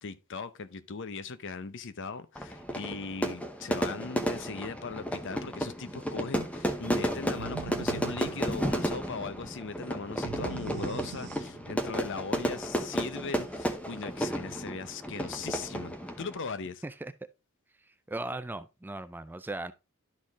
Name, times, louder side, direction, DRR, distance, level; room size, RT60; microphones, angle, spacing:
voice 1, 0.0-16.8, left 4 dB, 55° left, 0.7 m, -39 dB
Fire / Fireworks, 2.4-16.4, equal, 5° left, 0.8 m, -33 dB
sound 1, 7.4-9.1 10.2-11.9, right 7 dB, 80° right, 0.4 m, -41 dB
voice 2, 17.8-19.7, right 2 dB, 10° right, 0.3 m, -38 dB
11.5 x 4.3 x 3.5 m
head